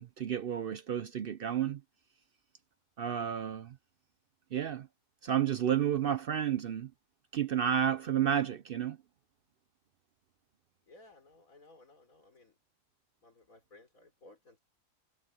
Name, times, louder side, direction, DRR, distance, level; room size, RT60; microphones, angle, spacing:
voice 1, 0.0-1.8 3.0-3.7 4.5-4.9 5.2-6.9 7.3-9.0, right 9 dB, 60° right, 0.6 m, -31 dB
voice 2, 10.9-12.5 13.2-14.6, left 2 dB, 90° left, 5.1 m, -58 dB
omnidirectional pair, 1.4 m